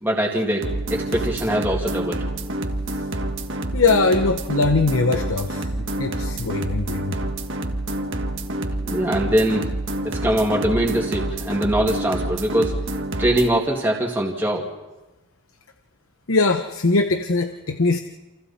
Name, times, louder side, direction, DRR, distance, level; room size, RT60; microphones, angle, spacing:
voice 1, 0.0-2.2 5.8-5.9 8.8-9.6 10.0-12.8 13.2-14.7, right 1 dB, 10° right, -2 dB, 2.3 m, -22 dB
sound 1, 0.6-13.5, right 1 dB, 55° right, 1.6 m, -28 dB
voice 2, 3.7-5.7 6.0-7.1 16.3-18.0, left 3 dB, 65° left, 7 dB, 1.0 m, -21 dB
29.0 x 27.5 x 4.3 m, 1.1 s
head